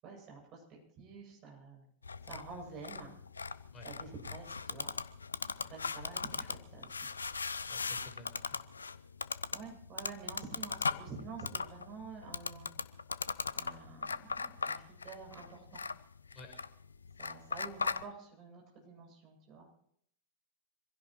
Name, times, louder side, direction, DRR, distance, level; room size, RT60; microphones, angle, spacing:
voice 1, 0.0-1.8 2.2-3.1 3.8-4.9 5.6-7.0 9.5-13.0 13.5-15.8 17.2-19.7, right 4 dB, 35° right, -1 dB, 7.7 m, -49 dB
sound 1, 2.0-18.0, left 4 dB, 75° left, 0.6 m, -39 dB
voice 2, 7.6-8.7 16.3-16.5, left 2 dB, 25° left, 2 dB, 5.6 m, -53 dB
26.0 x 16.0 x 3.1 m, 0.67 s
figure-of-eight pair, 90°, 0 cm